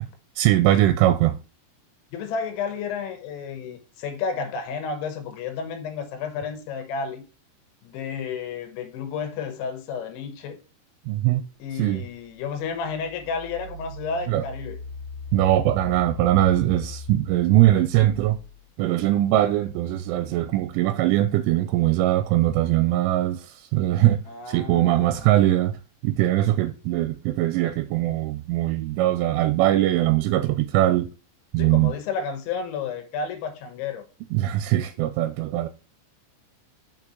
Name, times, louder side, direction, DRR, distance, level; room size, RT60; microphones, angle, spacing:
voice 1, 0.4-1.4 11.1-11.5 11.7-12.1 14.3-14.4 15.3-18.4 18.8-24.2 24.5-25.8 26.0-31.1 31.5-31.9 34.3-35.7, right 14 dB, 85° right, 3.0 m, -21 dB
voice 2, 2.1-7.2 7.8-10.6 11.6-14.8 24.3-25.4 31.6-34.0, left 5 dB, 75° left, 3.2 m, -31 dB
Engine, 12.7-18.6, left 2 dB, 50° right, 3.2 m, -39 dB
6.8 x 5.8 x 3.9 m
omnidirectional pair, 5.6 m